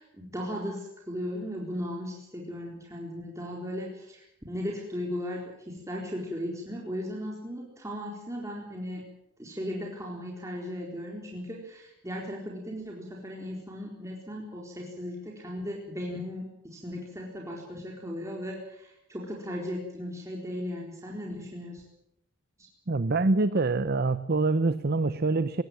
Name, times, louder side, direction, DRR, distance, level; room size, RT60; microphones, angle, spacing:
voice 1, 0.0-9.1 9.4-21.8, equal, 15° right, -1 dB, 4.1 m, -37 dB
voice 2, 22.9-25.6, right 3 dB, 45° right, 13 dB, 0.8 m, -25 dB
21.5 x 17.0 x 9.2 m, 0.82 s
head